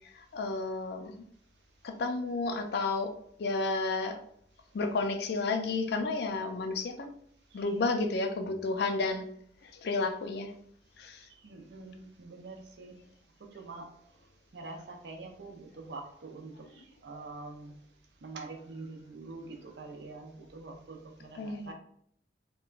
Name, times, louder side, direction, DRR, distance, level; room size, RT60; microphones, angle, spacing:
voice 1, 0.1-1.1 1.8-3.1 3.4-4.2 4.7-7.1 7.5-9.3 9.6-10.5 11.0-11.3 21.3-21.7, left 3 dB, 60° left, 5 dB, 0.4 m, -31 dB
voice 2, 11.4-13.0 13.4-13.8 14.5-17.7 18.2-21.7, right 3 dB, 70° right, 2 dB, 0.5 m, -45 dB
2.9 x 2.2 x 2.4 m, 0.67 s
head